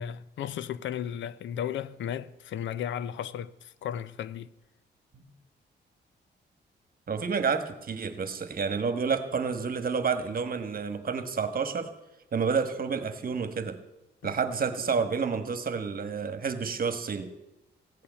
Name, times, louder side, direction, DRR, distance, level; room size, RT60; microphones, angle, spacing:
voice 1, 0.0-4.5 14.2-14.3, left 9 dB, 85° left, 0.6 m, -35 dB
voice 2, 7.1-11.9 12.3-13.8 14.2-17.3, right 5 dB, 50° right, 1.4 m, -29 dB
15.5 x 8.6 x 8.2 m
cardioid pair, 90°, 19 cm